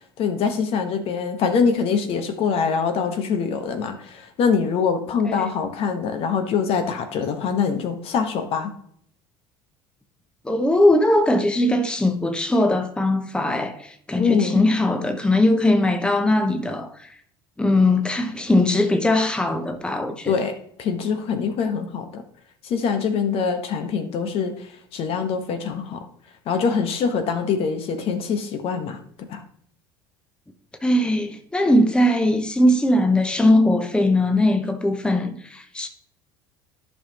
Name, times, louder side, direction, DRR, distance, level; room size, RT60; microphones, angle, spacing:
voice 1, 0.2-8.7 14.2-14.6 20.2-22.2 22.6-26.0 26.5-29.0 29.3-29.4, left 6 dB, 55° left, 1.2 m, -24 dB
voice 2, 10.4-17.1 17.6-20.3 30.8-35.9, left 1 dB, 10° left, 0.9 m, -20 dB
11.0 x 5.6 x 2.9 m
hypercardioid pair, 75°, 12 cm